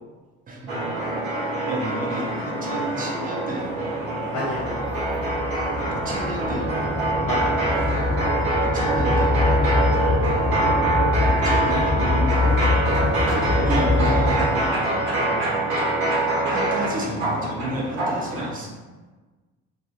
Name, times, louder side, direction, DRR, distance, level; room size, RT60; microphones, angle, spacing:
voice 1, 0.5-0.8 1.7-3.9 5.8-6.9 8.6-9.7 11.4-12.6 13.6-14.8 16.5-18.7, right 1 dB, 20° right, -1 dB, 0.5 m, -32 dB
sound 1, 0.7-18.5, right 2 dB, 60° right, 0.9 m, -24 dB
voice 2, 4.3-4.6 7.2-7.6 9.9-10.1 12.9-14.0 15.2-15.4, left 2 dB, 50° left, -8 dB, 0.7 m, -32 dB
sound 2, 4.6-14.5, left 2 dB, 15° left, 1.4 m, -24 dB
2.4 x 2.3 x 2.3 m, 1.3 s
figure-of-eight pair, 50°, 44 cm